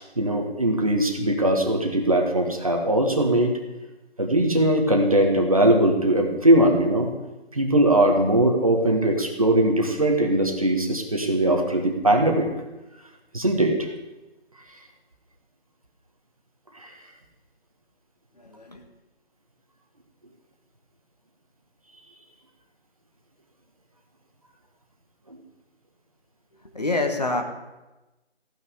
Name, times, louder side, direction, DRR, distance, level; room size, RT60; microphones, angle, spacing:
voice 1, 0.0-3.6 4.2-7.1 7.5-12.5 13.3-13.9 16.7-16.9 25.3-25.4, right 1 dB, 35° right, 2 dB, 1.6 m, -20 dB
voice 2, 18.3-18.8 26.6-27.4, left 2 dB, 40° left, 4 dB, 1.5 m, -27 dB
15.5 x 6.3 x 9.7 m, 1.0 s
figure-of-eight pair, 175°, 33 cm